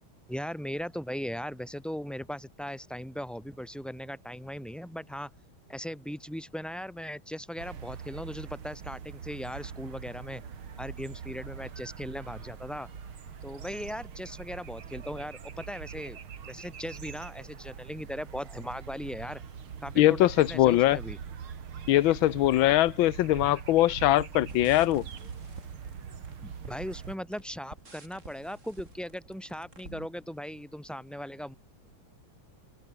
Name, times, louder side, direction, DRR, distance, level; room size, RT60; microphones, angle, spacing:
voice 1, 0.3-5.3 5.7-10.4 10.8-12.9 13.4-16.2 16.5-19.4 19.8-21.2 26.4-31.6, equal, ahead, 4.0 m, -38 dB
sound 1, 7.6-27.2, right 7 dB, 80° right, 2.9 m, -43 dB
voice 2, 20.0-21.0 21.9-25.0, left 15 dB, 75° left, 1.5 m, -22 dB
sound 2, 24.5-30.1, right 2 dB, 35° right, 4.7 m, -49 dB
open air
omnidirectional pair, 2.3 m